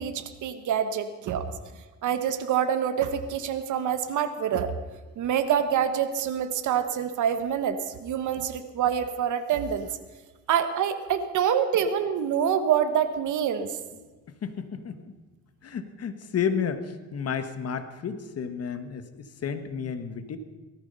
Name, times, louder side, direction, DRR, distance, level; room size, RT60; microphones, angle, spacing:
voice 1, 0.0-1.4 2.0-4.7 5.2-9.9 10.5-13.7, right 8 dB, 75° right, 9 dB, 1.4 m, -26 dB
voice 2, 14.4-15.1 15.6-20.4, left 7 dB, 55° left, 9 dB, 1.5 m, -32 dB
18.0 x 13.5 x 5.6 m, 1.3 s
cardioid pair, 90°, 30 cm